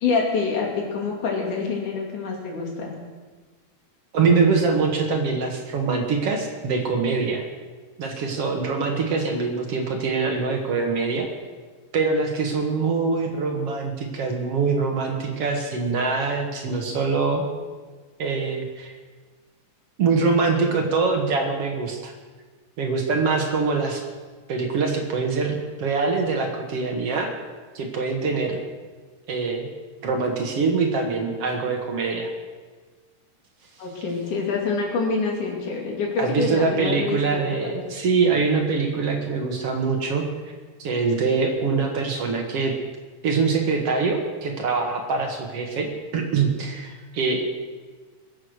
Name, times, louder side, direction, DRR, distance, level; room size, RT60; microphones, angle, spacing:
voice 1, 0.0-2.9 33.8-37.8, left 4 dB, 80° left, -1 dB, 4.2 m, -26 dB
voice 2, 4.1-7.4 8.0-11.3 11.9-17.4 18.2-19.0 20.0-22.1 22.8-24.0 24.5-27.3 27.7-28.6 29.3-29.7 30.0-32.3 36.2-40.2 40.8-42.7 43.2-45.9 46.1-47.4, right 4 dB, 55° right, 3 dB, 2.5 m, -24 dB
21.5 x 8.1 x 6.6 m, 1.4 s
omnidirectional pair, 3.5 m